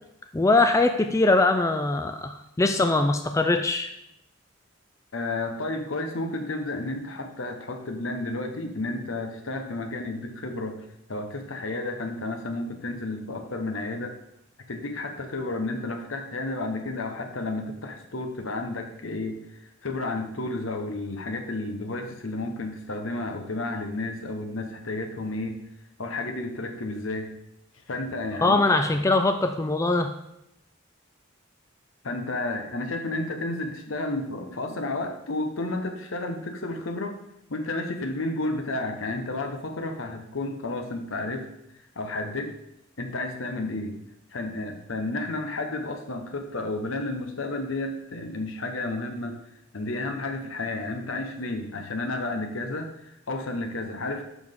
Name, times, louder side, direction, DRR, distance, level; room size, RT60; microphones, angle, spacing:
voice 1, 0.3-3.9 28.4-30.1, left 2 dB, 15° left, 6 dB, 0.3 m, -22 dB
voice 2, 5.1-14.1 14.7-19.4 19.8-25.6 26.0-27.3 27.9-28.6 32.0-37.2 37.5-41.5 42.0-42.6 43.0-43.9 44.3-49.4 49.7-54.2, left 2 dB, 80° left, 5 dB, 1.0 m, -31 dB
7.1 x 6.1 x 3.7 m, 0.81 s
head